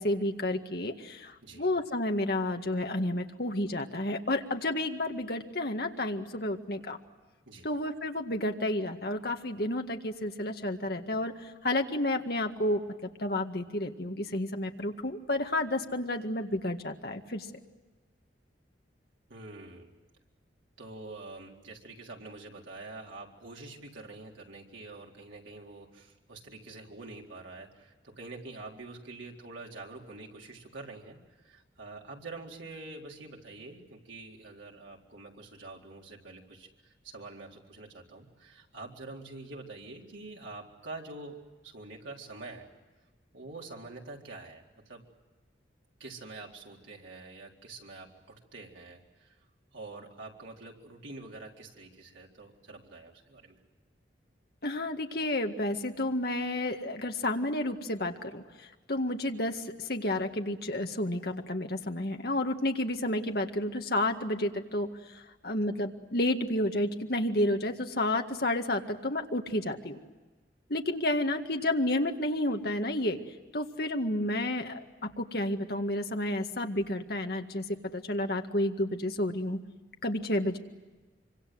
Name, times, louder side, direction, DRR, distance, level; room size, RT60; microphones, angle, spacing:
voice 1, 0.0-7.0 7.6-11.3 11.6-12.8 13.2-17.5 54.6-70.0 70.7-73.2 73.5-77.6 77.9-79.6 80.0-80.6, left 1 dB, 55° left, 4 dB, 1.9 m, -31 dB
voice 2, 19.3-19.9 20.8-42.7 43.3-45.0 46.0-49.4 49.7-53.6, right 3 dB, 85° right, -1 dB, 4.1 m, -46 dB
25.5 x 25.0 x 7.9 m, 1.3 s
head